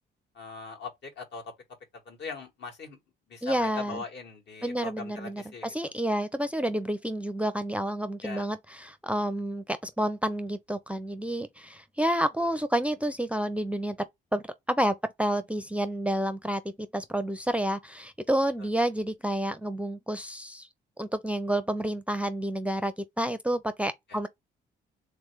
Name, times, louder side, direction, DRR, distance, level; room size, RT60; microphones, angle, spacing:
voice 1, 0.4-1.4 2.1-3.0 3.3-5.7 8.2-8.5 12.4-12.5 18.6-18.7 24.1-24.2, left 5 dB, 60° left, 1.9 m, -40 dB
voice 2, 3.4-4.0 4.6-20.7 21.0-24.3, right 1 dB, 5° right, 0.6 m, -29 dB
3.6 x 3.3 x 3.3 m
cardioid pair, 90°, 20 cm